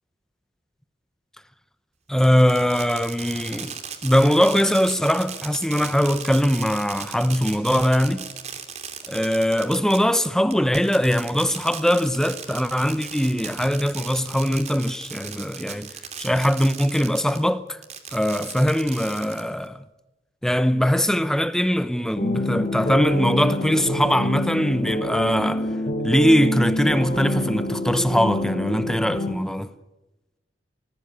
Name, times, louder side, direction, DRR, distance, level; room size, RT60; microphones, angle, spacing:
voice 1, 2.1-3.8 4.0-8.2 9.1-15.9 16.2-17.8 18.1-19.8 20.4-25.7 26.0-29.7, equal, 5° left, 0.9 m, -21 dB
Fireworks, 2.2-17.4 17.8-19.7, right 7 dB, 40° right, 2.8 m, -37 dB
sound 1, 22.2-29.3, left 1 dB, 40° left, 3.1 m, -27 dB
24.5 x 19.5 x 6.8 m
head